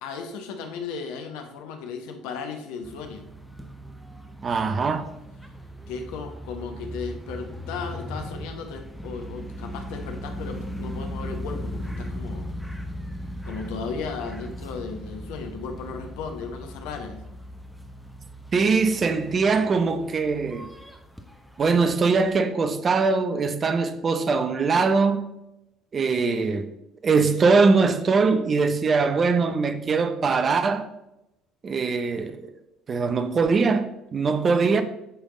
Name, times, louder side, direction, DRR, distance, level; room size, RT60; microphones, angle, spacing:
voice 1, 0.0-3.3 5.9-12.5 13.4-17.2 26.2-26.6, left 5 dB, 65° left, 0.9 m, -35 dB
sound 1, 2.8-22.4, equal, ahead, 0.9 m, -38 dB
voice 2, 4.4-5.0 18.5-20.7 21.6-25.3 25.9-26.7 27.0-30.9 31.6-32.4 32.9-34.8, right 4 dB, 35° right, 0.6 m, -22 dB
8.9 x 3.5 x 3.7 m
figure-of-eight pair, 55°, 0 cm